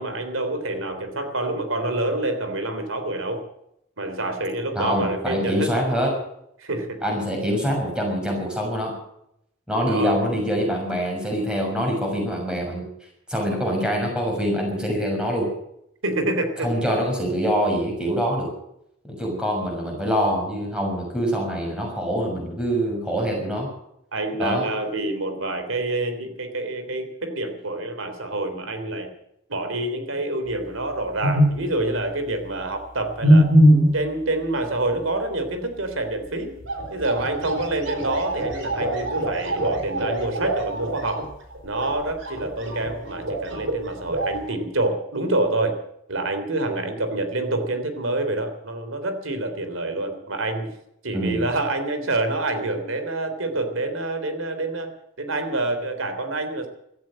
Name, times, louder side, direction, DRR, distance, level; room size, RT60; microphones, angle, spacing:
voice 1, 0.0-3.4 4.0-5.9 6.6-7.2 9.9-10.2 16.0-16.7 24.1-29.1 29.5-33.5 33.9-36.5 36.9-41.3 41.6-45.7 46.1-50.7 51.0-54.9 55.2-56.7, right 2 dB, 90° right, 8 dB, 3.4 m, -27 dB
voice 2, 4.7-6.1 7.0-9.0 9.7-12.8 13.3-15.5 16.6-18.5 19.0-23.7 24.4-24.7 51.1-51.5, equal, 5° right, 0 dB, 6.3 m, -25 dB
sound 1, 30.4-30.5 31.2-31.7 33.2-34.0 36.3-36.4 36.6-43.8 44.1-44.5, equal, 75° right, 4.6 m, -22 dB
16.5 x 13.5 x 6.4 m, 0.77 s
head